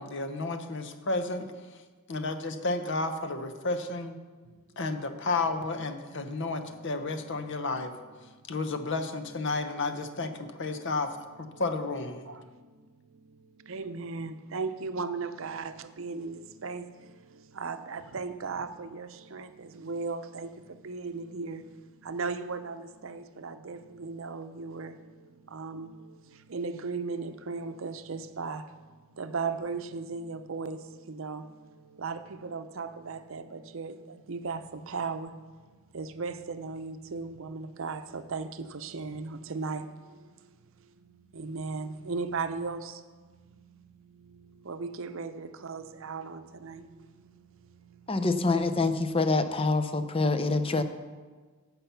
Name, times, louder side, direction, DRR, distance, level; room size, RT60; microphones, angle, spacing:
voice 1, 0.0-1.5 2.1-4.2 4.8-7.9 8.5-11.1 11.4-12.3, left 3 dB, 60° left, 0.9 m, -32 dB
voice 2, 13.7-15.7 16.0-16.8 17.6-19.5 19.8-20.5 20.8-21.6 22.1-24.9 25.5-25.9 26.5-28.6 29.2-30.8 31.1-31.4 32.0-33.9 34.3-34.6 34.9-35.3 35.9-38.5 38.8-39.8 41.4-42.8 44.7-46.8, right 4 dB, 65° right, 0.6 m, -36 dB
voice 3, 48.1-50.8, left 3 dB, 25° left, 0.6 m, -26 dB
15.0 x 5.8 x 5.7 m
head